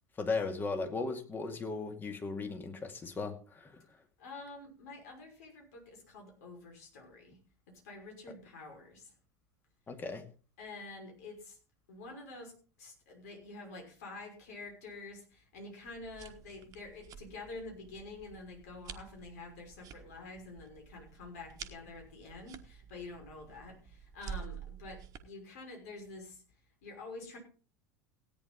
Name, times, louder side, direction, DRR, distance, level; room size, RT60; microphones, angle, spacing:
voice 1, 0.2-3.8 9.9-10.3, left 3 dB, 20° left, 2.2 m, -37 dB
voice 2, 4.2-7.4 7.7-9.1 10.6-11.6 11.9-26.4 26.8-27.4, left 3 dB, 60° left, 5.8 m, -48 dB
sound 1, 15.9-25.2, right 8 dB, 40° right, 1.4 m, -49 dB
17.0 x 9.7 x 4.1 m
figure-of-eight pair, 80°, 10 cm